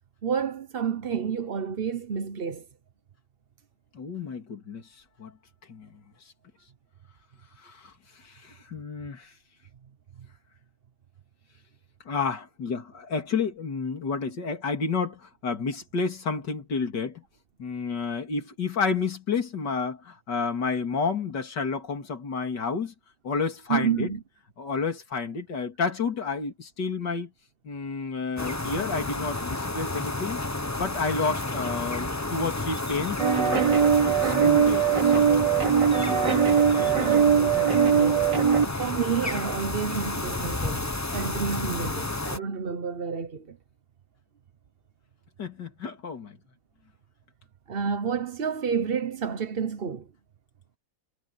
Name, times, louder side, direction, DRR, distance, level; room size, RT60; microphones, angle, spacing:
voice 1, 0.2-2.6 23.7-24.2 36.7-38.2 38.6-43.6 47.7-50.1, right 6 dB, 40° right, 0.8 m, -30 dB
voice 2, 3.9-4.9 5.2-5.3 5.7-6.0 7.6-9.3 12.1-17.2 17.6-22.9 23.2-24.1 24.6-27.3 27.6-30.4 30.7-33.8 34.2-35.3 45.4-46.4, left 5 dB, 65° left, 3.5 m, -30 dB
sound 1, 28.4-42.4, left 2 dB, 15° left, 0.6 m, -31 dB
sound 2, 33.2-38.6, right 7 dB, 65° right, 3.2 m, -21 dB
omnidirectional pair, 2.0 m